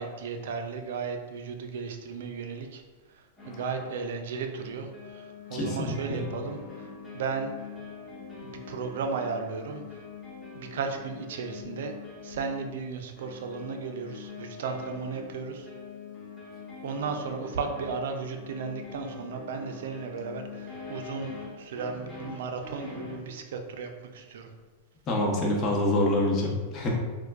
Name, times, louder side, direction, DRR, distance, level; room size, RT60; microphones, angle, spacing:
voice 1, 0.0-2.8 3.1-6.9 7.1-7.5 8.4-10.0 10.5-11.9 12.2-15.7 16.8-24.5, right 5 dB, 70° right, 5 dB, 0.4 m, -35 dB
sound 1, 3.4-4.1 4.6-23.3, left 5 dB, 5° left, 1.4 m, -43 dB
voice 2, 5.5-6.3 25.1-26.9, left 1 dB, 35° left, -2 dB, 0.8 m, -26 dB
4.3 x 2.2 x 2.3 m, 1.4 s
hypercardioid pair, 115°, 0 cm